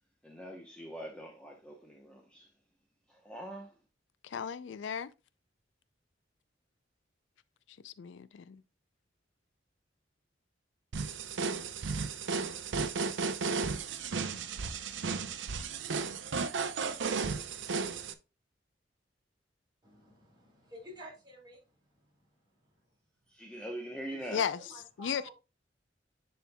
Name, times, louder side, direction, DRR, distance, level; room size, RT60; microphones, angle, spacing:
voice 1, 0.2-2.5 3.1-3.8 23.3-24.4, right 1 dB, 5° left, 0.9 m, -43 dB
voice 2, 4.2-5.1 7.8-8.6 24.3-24.6 25.0-25.3, left 7 dB, 80° left, 0.4 m, -35 dB
sound 1, 10.9-18.1, right 4 dB, 80° right, 0.6 m, -34 dB
voice 3, 19.8-22.9 23.2-23.3 24.4-25.3, equal, 25° right, 3.7 m, -52 dB
10.0 x 4.4 x 2.2 m
head